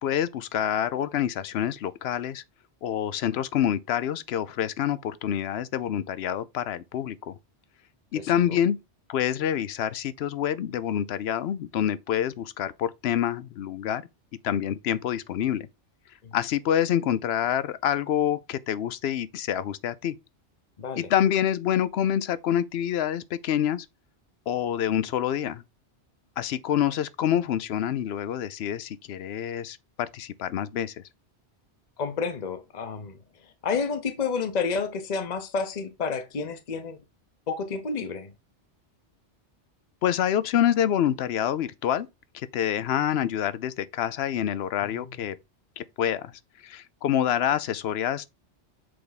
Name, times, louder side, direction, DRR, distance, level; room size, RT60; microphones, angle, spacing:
voice 1, 0.0-2.4 2.8-7.3 8.1-8.8 9.1-14.1 14.4-15.7 16.3-20.2 21.0-23.9 24.5-25.6 26.4-30.9 40.0-42.1 42.3-45.4 45.8-46.3 46.6-48.2, left 10 dB, 70° left, 0.8 m, -27 dB
voice 2, 20.8-21.1 32.0-33.2 33.6-37.0 37.5-38.3 44.8-45.1, left 5 dB, 40° left, 0.9 m, -30 dB
7.7 x 3.4 x 4.1 m
omnidirectional pair, 1.2 m